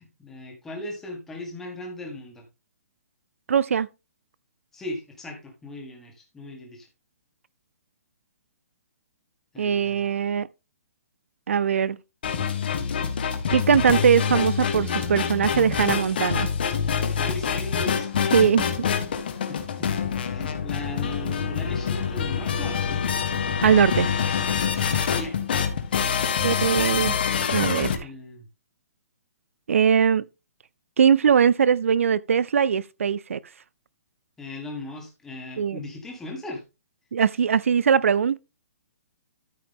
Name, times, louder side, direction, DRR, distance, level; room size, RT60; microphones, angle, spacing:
voice 1, 0.0-2.4 4.7-6.9 9.5-10.1 17.1-18.1 19.5-19.9 20.3-23.0 25.2-25.4 28.0-28.5 34.4-36.6, left 2 dB, 5° left, 1.5 m, -38 dB
voice 2, 3.5-3.9 9.6-10.5 11.5-12.0 13.5-16.5 18.3-18.7 23.6-24.1 26.4-27.1 27.5-28.1 29.7-30.2 31.0-33.4 35.6-35.8 37.1-38.4, right 7 dB, 65° right, 0.4 m, -21 dB
sound 1, 12.2-27.9, left 7 dB, 40° left, 1.4 m, -26 dB
13.5 x 4.9 x 3.6 m
hypercardioid pair, 180°, 8 cm